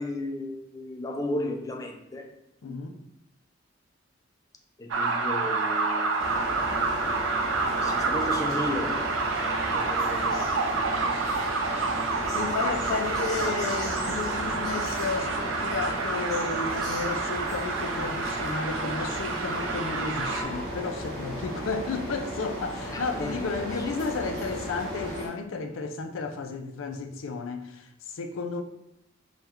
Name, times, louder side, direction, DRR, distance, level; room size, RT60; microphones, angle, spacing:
voice 1, 0.0-2.3 2.6-2.8 4.8-6.4 7.8-10.9 22.9-23.5 23.8-23.9, left 1 dB, 15° left, 0.4 m, -35 dB
voice 2, 2.6-3.0 12.3-28.6, left 4 dB, 85° left, 0.4 m, -33 dB
sound 1, 4.9-20.4, right 3 dB, 80° right, 0.5 m, -29 dB
sound 2, 6.2-25.3, equal, ahead, 1.5 m, -35 dB
4.2 x 2.3 x 3.5 m
head